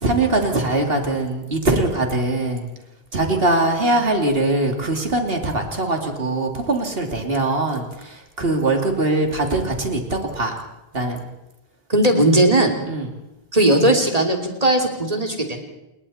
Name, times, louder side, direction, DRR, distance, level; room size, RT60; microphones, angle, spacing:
voice 1, 0.0-2.7 3.1-10.6 10.9-11.2 12.9-13.1, right 2 dB, 70° right, 3 dB, 3.1 m, -22 dB
voice 2, 11.9-12.7 13.5-15.6, right 1 dB, 35° right, 3 dB, 3.1 m, -17 dB
28.5 x 21.5 x 4.3 m, 0.95 s
omnidirectional pair, 1.0 m